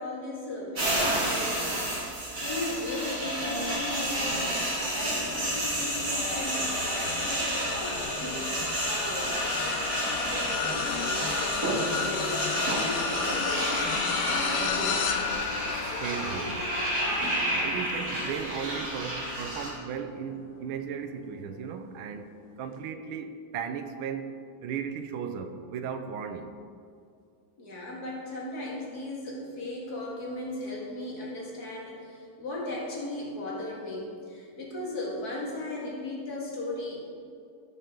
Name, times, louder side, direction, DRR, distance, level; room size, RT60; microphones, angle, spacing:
voice 1, 0.0-4.7 4.9-13.8 14.2-15.0 27.6-37.0, left 2 dB, 50° left, -4 dB, 2.2 m, -37 dB
sound 1, 0.7-19.7, right 1 dB, 45° right, 2.8 m, -31 dB
sound 2, 3.4-17.3, left 1 dB, 65° left, 0.3 m, -41 dB
sound 3, 5.2-20.7 21.2-21.4 22.7-22.8, left 6 dB, 85° left, 0.7 m, -34 dB
voice 2, 16.0-16.7 17.5-26.6, right 7 dB, 80° right, 8 dB, 1.5 m, -36 dB
15.5 x 5.4 x 3.7 m, 2.4 s
omnidirectional pair, 2.3 m